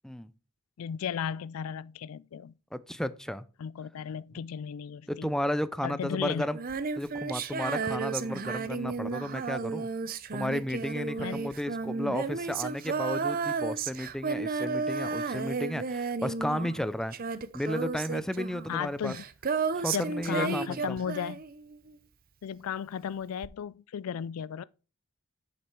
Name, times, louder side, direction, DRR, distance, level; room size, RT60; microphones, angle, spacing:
voice 1, 0.8-2.5 3.6-5.3 5.8-6.5 11.2-11.4 18.7-19.2 19.9-21.4 22.4-24.6, left 8 dB, 85° left, 0.4 m, -35 dB
voice 2, 2.7-3.4 5.1-6.6 7.0-9.9 10.3-17.2 17.5-19.1 19.7-21.0, equal, 5° left, 0.4 m, -33 dB
Female singing, 6.5-21.9 23.4-23.5, right 4 dB, 45° right, 0.6 m, -33 dB
8.4 x 6.8 x 4.6 m
head